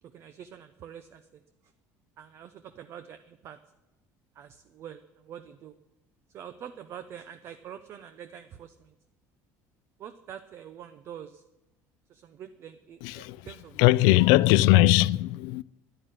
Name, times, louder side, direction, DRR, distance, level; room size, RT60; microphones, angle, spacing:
voice 1, 0.0-1.7 2.2-3.6 4.3-5.7 6.3-8.9 10.0-11.4 12.1-14.2, right 9 dB, 40° right, 0.6 m, -45 dB
voice 2, 13.0-13.5 13.8-15.6, left 17 dB, 90° left, 0.4 m, -20 dB
11.0 x 11.0 x 9.0 m
cardioid pair, 170°, 7 cm